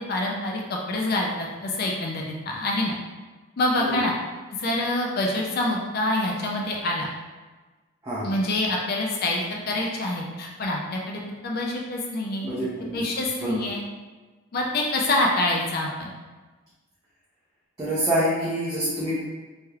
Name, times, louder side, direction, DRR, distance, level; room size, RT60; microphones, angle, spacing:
voice 1, 0.1-3.0 3.6-4.1 4.6-7.1 8.2-12.5 12.9-13.8 14.5-16.1, left 1 dB, 50° left, -1 dB, 0.4 m, -26 dB
voice 2, 12.4-13.0 13.4-13.6 17.8-19.2, equal, 20° right, -10 dB, 0.6 m, -26 dB
3.2 x 2.9 x 2.3 m, 1.3 s
head